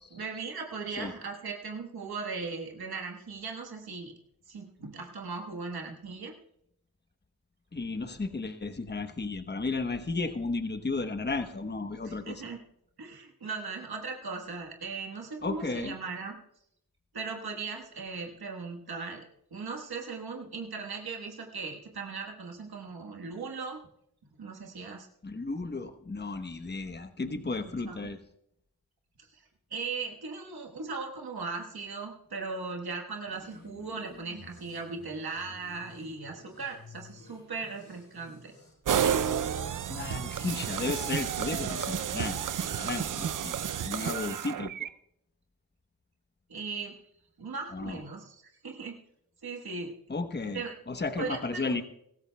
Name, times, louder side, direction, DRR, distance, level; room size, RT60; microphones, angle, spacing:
voice 1, 0.1-4.1 4.5-6.3 12.0-12.6 13.0-16.4 17.1-19.2 19.5-23.8 24.4-25.1 27.8-28.0 29.2-29.4 29.7-38.5 46.5-47.0 47.4-48.9 49.4-49.9 50.5-50.7 51.2-51.8, right 4 dB, 80° right, 2 dB, 1.4 m, -38 dB
voice 2, 7.7-12.4 15.4-16.0 25.2-28.2 39.9-42.4 42.8-43.6 43.9-44.9 47.7-48.0 50.1-51.8, left 3 dB, 30° left, 8 dB, 1.0 m, -34 dB
sound 1, 33.3-38.7, left 3 dB, 60° left, 4.1 m, -53 dB
sound 2, 38.9-44.9, right 8 dB, 60° right, 0.5 m, -31 dB
23.0 x 13.5 x 2.3 m, 0.76 s
cardioid pair, 50°, 37 cm